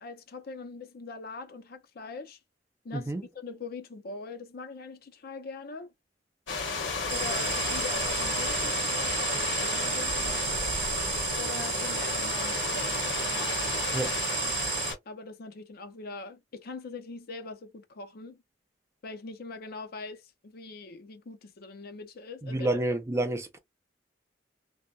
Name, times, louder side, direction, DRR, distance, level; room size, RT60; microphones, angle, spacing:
voice 1, 0.0-2.4 2.8-5.9 7.1-10.5 11.4-13.1 13.3-14.5 15.1-18.4 19.0-22.7, left 3 dB, 55° left, 0.5 m, -42 dB
sound 1, 6.5-14.9, left 4 dB, 75° left, 1.2 m, -32 dB
sound 2, 7.1-14.9, right 12 dB, 70° right, 0.6 m, -33 dB
voice 2, 22.4-23.6, right 1 dB, 15° right, 0.4 m, -29 dB
2.7 x 2.1 x 2.3 m
head